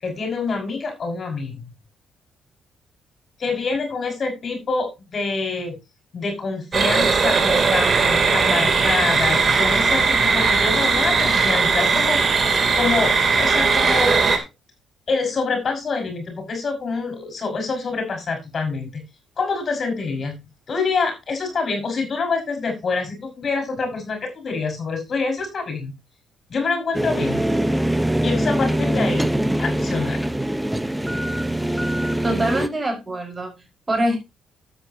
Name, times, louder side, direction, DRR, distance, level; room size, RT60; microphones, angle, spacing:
voice 1, 0.0-1.7 3.4-5.7 6.1-12.5 12.7-14.1 15.1-19.0 19.4-20.4 20.7-25.9 26.5-27.4 28.2-29.3 29.6-30.2, left 4 dB, 45° left, 5 dB, 5.7 m, -26 dB
sound 1, 6.7-14.4, right 4 dB, 40° right, 3.1 m, -18 dB
sound 2, 26.9-32.7, right 1 dB, 5° right, 1.0 m, -23 dB
voice 2, 32.2-34.2, right 1 dB, 25° right, 3 dB, 5.3 m, -24 dB
13.0 x 8.9 x 2.9 m, 0.24 s
cardioid pair, 90°, 0 cm